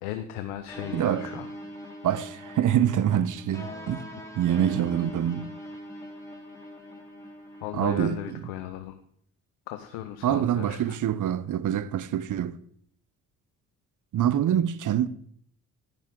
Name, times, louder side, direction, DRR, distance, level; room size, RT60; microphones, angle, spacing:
voice 1, 0.0-1.5 7.6-9.0 9.7-11.0, left 12 dB, 90° left, 0.7 m, -36 dB
sound 1, 0.7-8.3, left 1 dB, 10° left, 3.3 m, -42 dB
voice 2, 0.9-1.4 2.0-4.1 4.4-5.6 7.7-8.5 10.2-12.6 14.1-15.1, right 10 dB, 55° right, 0.7 m, -25 dB
10.5 x 9.8 x 3.7 m
hypercardioid pair, 50°, 37 cm